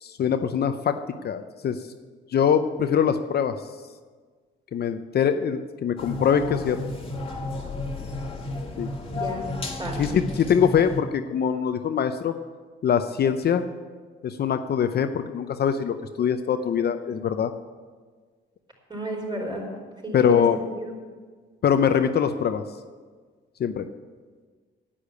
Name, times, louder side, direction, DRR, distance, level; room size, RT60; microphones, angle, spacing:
voice 1, 0.0-1.8 2.3-3.6 4.7-6.8 8.8-8.9 9.9-12.3 12.8-13.7 14.2-17.5 20.1-20.6 21.6-22.6 23.6-23.9, left 8 dB, 55° left, 8 dB, 0.6 m, -23 dB
sound 1, 6.0-11.0, left 2 dB, 25° left, 1.8 m, -33 dB
voice 2, 9.0-9.4 9.8-10.0 18.9-19.6 20.0-20.4 20.8-20.9, right 2 dB, 25° right, -2 dB, 4.6 m, -32 dB
10.0 x 8.7 x 8.2 m, 1.5 s
cardioid pair, 90°, 20 cm